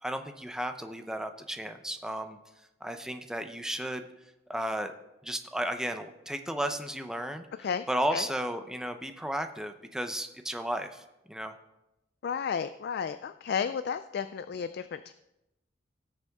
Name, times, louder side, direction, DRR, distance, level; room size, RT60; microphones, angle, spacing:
voice 1, 0.0-2.4 2.8-4.0 4.5-4.9 5.2-7.5 7.9-11.5, right 1 dB, 5° right, 7 dB, 0.7 m, -34 dB
voice 2, 12.2-15.1, left 7 dB, 60° left, 12 dB, 0.3 m, -32 dB
17.5 x 6.8 x 3.6 m, 0.91 s
head